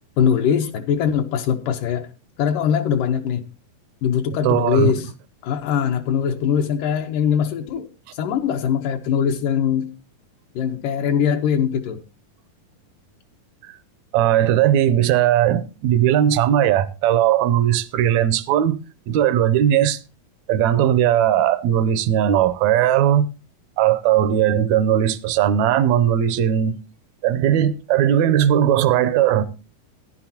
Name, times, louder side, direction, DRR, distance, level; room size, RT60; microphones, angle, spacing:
voice 1, 0.2-2.1 2.4-3.4 4.0-5.1 5.4-7.9 8.1-9.9 10.6-12.0, left 8 dB, 80° left, 2.5 m, -21 dB
voice 2, 4.4-4.9 14.1-18.8 19.1-20.0 20.5-23.3 23.8-26.8 27.2-29.4, right 11 dB, 80° right, 1.7 m, -18 dB
15.5 x 10.5 x 2.9 m
omnidirectional pair, 3.8 m